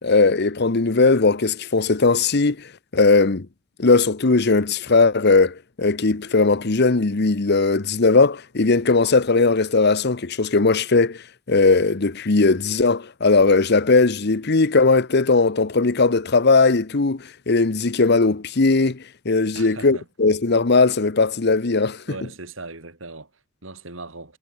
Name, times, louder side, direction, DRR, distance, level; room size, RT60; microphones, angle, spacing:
voice 1, 0.0-2.7 2.9-3.5 3.8-11.2 11.5-22.0, left 3 dB, 55° left, 1.0 m, -18 dB
voice 2, 19.5-20.1 22.1-24.4, right 3 dB, 80° right, 4.5 m, -38 dB
head